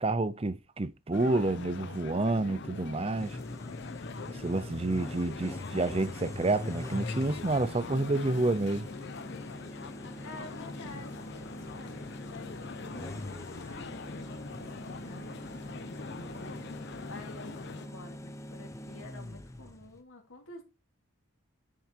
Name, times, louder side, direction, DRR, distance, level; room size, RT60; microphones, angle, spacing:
voice 1, 0.0-3.4 4.3-8.9, right 2 dB, 25° right, 0.5 m, -29 dB
sound 1, 1.1-17.9, left 4 dB, 50° left, 0.6 m, -43 dB
sound 2, 3.2-20.0, left 1 dB, 15° left, 0.7 m, -43 dB
voice 2, 10.2-15.3 16.1-16.6 17.0-20.6, left 2 dB, 70° left, 2.5 m, -49 dB
10.5 x 4.7 x 4.5 m
head